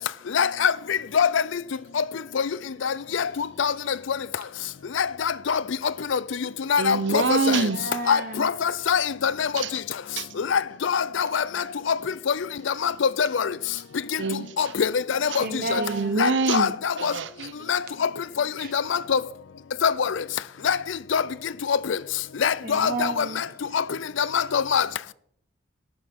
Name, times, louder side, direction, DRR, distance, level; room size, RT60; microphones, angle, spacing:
voice 1, 0.4-0.7 1.2-1.3 3.6-3.7 5.0-5.1 5.5-5.6 6.1-6.2 6.7-7.2 8.1-8.5 8.9-9.5 10.5-10.6 10.9-11.0 11.3-11.4 12.8-12.9 13.2-13.3 14.6-14.9 15.4-15.5 16.2-16.7 17.0-17.1 17.7-17.8 18.7-18.8 19.1-19.2 19.8-19.9 20.7-20.8 21.1-21.2 21.7-21.8 22.4-22.9 23.2-23.3 24.3-24.8, left 7 dB, 75° left, 0.5 m, -21 dB
voice 2, 6.8-7.8 9.6-9.7 10.2-10.3 11.6-11.7 14.2-14.7 15.3-15.5 15.8-17.7, right 4 dB, 65° right, 0.9 m, -26 dB
voice 3, 7.5-8.5 15.4-16.3 18.6-18.7 22.6-24.0, right 3 dB, 45° right, 1.5 m, -33 dB
13.5 x 12.5 x 3.6 m
head